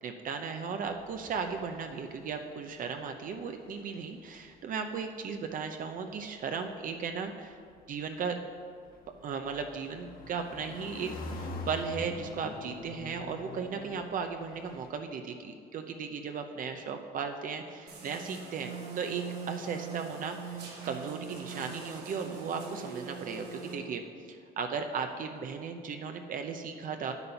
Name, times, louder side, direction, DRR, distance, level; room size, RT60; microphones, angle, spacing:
voice 1, 0.0-7.6 7.9-8.4 9.2-11.1 11.4-27.1, right 5 dB, 55° right, 5 dB, 0.7 m, -36 dB
sound 1, 0.8-2.8 3.0-4.3 5.3-5.6 7.7-14.9, left 2 dB, 60° left, 1.4 m, -45 dB
sound 2, 17.9-23.7, right 5 dB, 80° right, 2.0 m, -42 dB
8.7 x 8.2 x 5.7 m, 2.1 s
cardioid pair, 110°, 17 cm